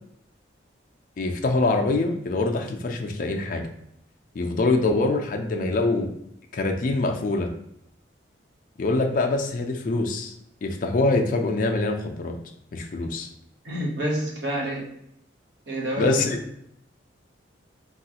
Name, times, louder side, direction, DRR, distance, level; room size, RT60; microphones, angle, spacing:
voice 1, 1.2-3.7 4.3-6.1 6.5-7.5 8.8-10.3 10.6-12.4 12.7-13.3 16.0-16.4, left 2 dB, 45° left, 3 dB, 0.3 m, -24 dB
voice 2, 13.6-14.9 15.7-16.3, right 1 dB, 65° right, -2 dB, 0.8 m, -28 dB
2.9 x 2.3 x 2.8 m, 0.78 s
head